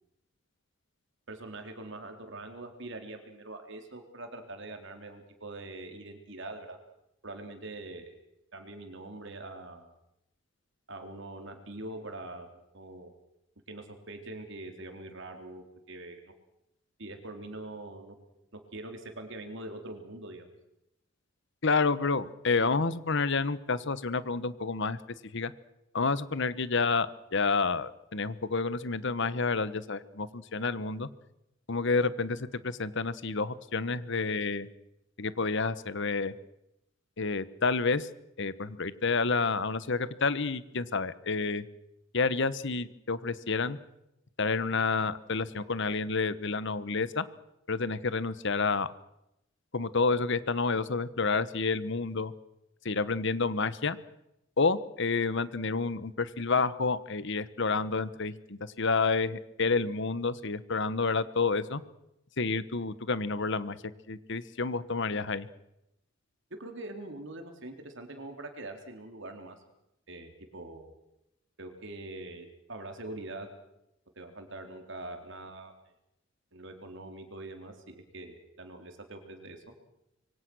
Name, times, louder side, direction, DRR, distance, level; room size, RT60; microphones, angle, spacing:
voice 1, 1.3-6.8 7.2-8.2 8.5-9.9 10.9-13.1 13.7-16.3 17.0-18.2 18.7-20.5 66.5-69.6 70.1-70.9 71.6-73.5 74.1-75.7 76.5-79.6, right 2 dB, 65° right, 5 dB, 3.9 m, -43 dB
voice 2, 21.6-25.0 25.3-25.5 25.9-31.1 31.7-34.7 35.2-36.3 37.2-38.1 38.4-41.6 42.1-43.8 44.4-47.2 47.7-48.9 49.7-52.3 52.8-54.0 54.6-61.8 62.4-63.8 64.1-65.5, left 4 dB, 65° left, 15 dB, 1.2 m, -29 dB
26.0 x 23.5 x 6.3 m, 0.85 s
head